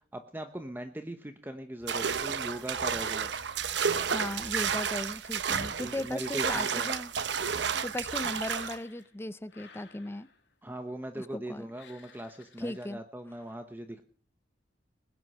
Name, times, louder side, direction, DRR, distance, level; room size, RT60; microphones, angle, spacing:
voice 1, 0.1-3.3 5.8-6.9 10.6-14.0, right 1 dB, 10° right, 7 dB, 0.9 m, -40 dB
sound 1, 1.9-8.8, right 6 dB, 75° right, 0.9 m, -31 dB
voice 2, 4.1-7.1 7.8-10.3 11.2-11.7 12.6-13.0, left 1 dB, 15° left, 15 dB, 0.6 m, -37 dB
sound 2, 8.0-9.2 9.5-10.5 11.7-12.9, left 6 dB, 85° left, 2.7 m, -55 dB
20.5 x 9.6 x 5.5 m, 0.43 s
head